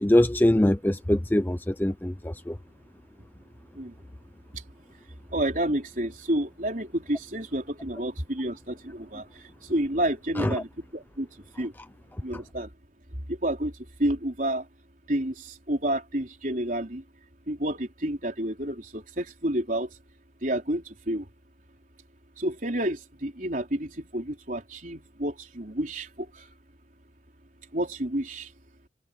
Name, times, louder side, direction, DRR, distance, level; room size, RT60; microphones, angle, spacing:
voice 1, 0.0-2.6 10.4-10.6, left 1 dB, 10° left, 0.5 m, -23 dB
voice 2, 5.3-9.2 9.7-11.3 11.6-11.7 12.2-12.7 13.3-13.7 14.0-14.6 15.1-15.3 15.7-17.0 17.5-19.9 20.4-21.3 22.4-26.1 27.7-28.5, right 1 dB, 45° right, 4.3 m, -29 dB
head